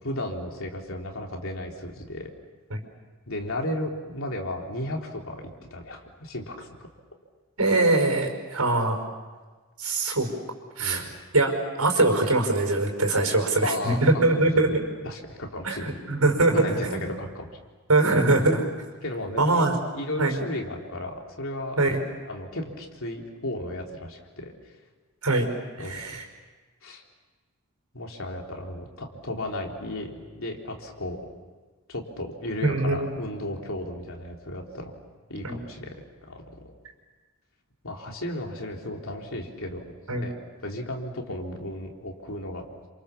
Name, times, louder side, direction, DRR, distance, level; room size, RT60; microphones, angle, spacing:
voice 1, 0.0-2.3 3.3-6.7 10.8-11.1 13.6-14.0 14.6-16.0 16.5-17.5 19.0-19.7 19.9-21.8 22.3-24.5 25.8-26.2 26.8-27.0 27.9-31.3 31.9-34.9 35.3-35.9 36.3-36.7 37.8-39.9 40.1-40.3 40.6-42.6, left 1 dB, 65° left, 1 dB, 3.8 m, -34 dB
voice 2, 7.6-9.0 9.8-10.3 10.8-11.1 11.3-14.8 15.6-17.0 17.9-18.7 19.4-19.8 20.2-20.4 21.8-22.0 25.2-25.5 25.8-26.2 32.6-33.2 35.4-35.6 40.1-40.3, right 2 dB, 85° right, 3 dB, 5.4 m, -22 dB
29.0 x 27.0 x 7.2 m, 1.3 s
head